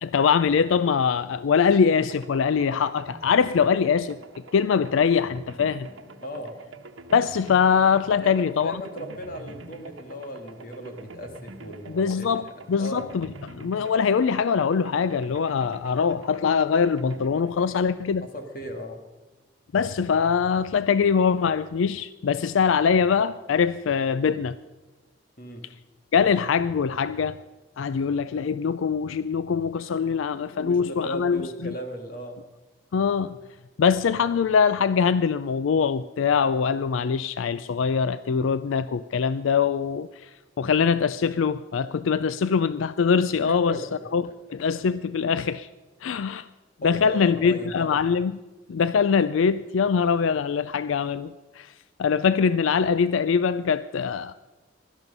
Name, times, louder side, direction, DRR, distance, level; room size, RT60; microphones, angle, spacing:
voice 1, 0.0-4.2 4.5-5.9 7.1-8.8 11.9-18.3 19.7-24.6 26.1-27.4 27.8-31.7 32.9-33.4 33.8-40.3 40.6-43.8 44.1-44.2 44.5-45.7 46.0-46.5 46.8-48.3 48.7-51.7 52.0-54.4, left 6 dB, 80° left, 15 dB, 0.4 m, -23 dB
sound 1, 1.6-18.5, right 2 dB, 80° right, 1.1 m, -45 dB
voice 2, 6.2-6.5 8.2-12.3 12.8-13.0 18.3-19.0 25.4-25.7 30.5-32.4 43.4-44.3 46.8-47.9, equal, 45° left, 5 dB, 1.9 m, -37 dB
17.0 x 12.5 x 5.3 m, 1.2 s
head